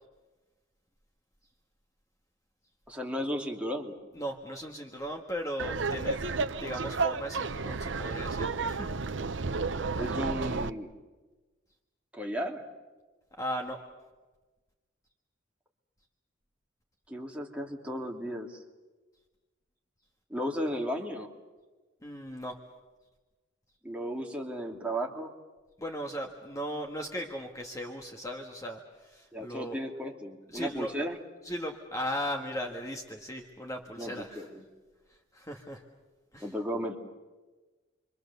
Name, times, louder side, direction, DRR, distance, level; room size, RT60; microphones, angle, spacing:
voice 1, 2.9-3.9 10.0-10.9 12.1-12.6 17.1-18.6 20.3-21.3 23.8-25.3 29.3-31.2 34.0-34.6 36.4-37.0, equal, 5° right, 0 dB, 2.6 m, -34 dB
voice 2, 4.1-6.3 6.6-9.0 13.4-13.8 22.0-22.5 25.8-29.8 30.5-31.0 31.4-34.5 35.1-35.8 36.3-36.5, equal, 15° left, 2 dB, 1.7 m, -37 dB
Laughter, 5.6-10.7, right 4 dB, 65° right, 0.8 m, -32 dB
29.0 x 24.5 x 6.9 m, 1.2 s
head